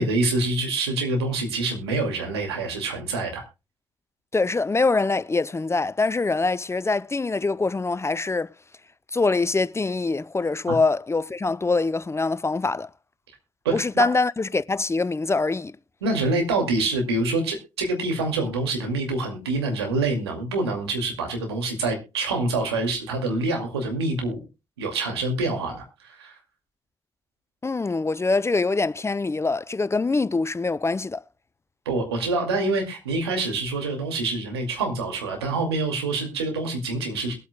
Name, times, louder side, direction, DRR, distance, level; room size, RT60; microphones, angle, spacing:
voice 1, 0.0-3.4 10.7-10.8 13.6-14.1 16.0-24.4 24.8-26.4 31.9-37.3, right 2 dB, 85° right, 2.3 m, -26 dB
voice 2, 4.3-8.5 9.1-12.9 13.7-15.8 27.6-31.2, left 3 dB, 20° left, 0.5 m, -24 dB
21.5 x 8.4 x 2.2 m
hypercardioid pair, 45°, 13 cm